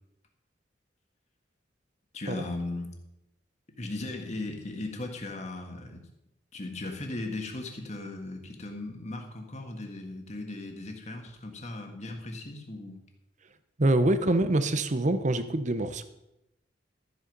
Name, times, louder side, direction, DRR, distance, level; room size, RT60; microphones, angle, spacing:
voice 1, 2.1-2.9 3.8-6.0 6.5-13.0, left 2 dB, 40° left, 3 dB, 1.8 m, -37 dB
voice 2, 13.8-16.0, right 1 dB, 40° right, 11 dB, 0.8 m, -25 dB
13.0 x 7.9 x 5.5 m, 0.89 s
head